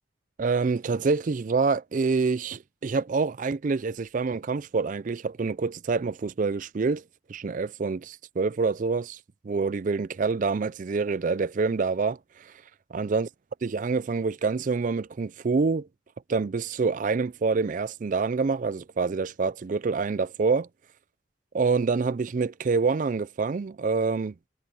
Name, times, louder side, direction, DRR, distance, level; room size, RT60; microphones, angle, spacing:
voice 1, 0.4-7.0 7.3-9.2 9.4-12.5 12.9-13.3 13.6-15.9 16.3-20.7 21.5-24.3, right 4 dB, 40° right, 0.4 m, -26 dB
head